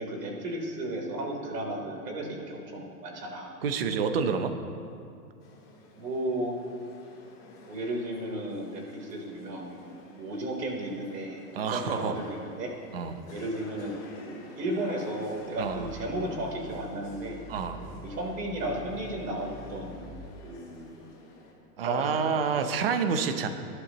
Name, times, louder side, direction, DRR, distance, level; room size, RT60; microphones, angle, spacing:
voice 1, 0.0-3.5 6.0-6.6 7.7-12.7 13.3-14.0 14.3-17.4 18.0-20.1 20.4-21.0 21.8-22.4, right 1 dB, 85° right, -1 dB, 3.7 m, -34 dB
voice 2, 3.6-4.5 11.6-12.2 12.9-13.2 15.6-15.9 17.5-17.8 21.8-23.5, right 6 dB, 40° right, 8 dB, 0.7 m, -28 dB
sound 1, 5.4-21.5, left 2 dB, 25° left, 2.5 m, -51 dB
Growling, 15.3-20.3, equal, ahead, 0.6 m, -46 dB
21.0 x 11.0 x 3.0 m, 2.4 s
hypercardioid pair, 180°, 47 cm